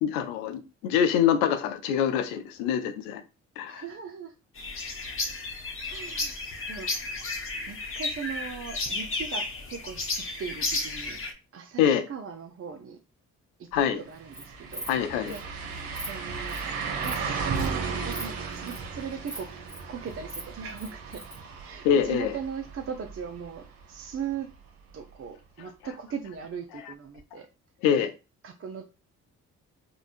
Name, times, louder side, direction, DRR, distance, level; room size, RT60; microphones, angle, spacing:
voice 1, 0.0-3.2 3.6-3.8 11.8-12.0 13.7-14.0 14.9-15.4 21.8-22.4 26.7-26.8 27.8-28.1, left 8 dB, 80° left, 0.5 m, -25 dB
voice 2, 3.7-4.3 5.8-6.9 7.7-11.2 11.5-13.0 13.6-13.7 14.0-14.9 15.3-15.4 16.0-16.6 17.0-19.5 19.9-21.2 21.6-24.5 24.9-27.5 28.4-28.8, right 6 dB, 35° right, 0.5 m, -39 dB
sound 1, 4.6-11.3, left 3 dB, 35° left, 0.9 m, -33 dB
sound 2, 13.7-13.8 14.1-23.9 24.3-24.4 27.2-27.3, right 5 dB, 70° right, 0.8 m, -35 dB
Insect, 14.1-14.4 14.7-14.9 15.3-15.4 15.7-16.1 16.5-16.7 17.0-17.2 17.5-17.7 18.1-18.2 18.5-18.8 19.3-19.8 20.1-21.4, right 1 dB, ahead, 0.9 m, -39 dB
3.6 x 2.2 x 2.4 m
hypercardioid pair, 45°, 37 cm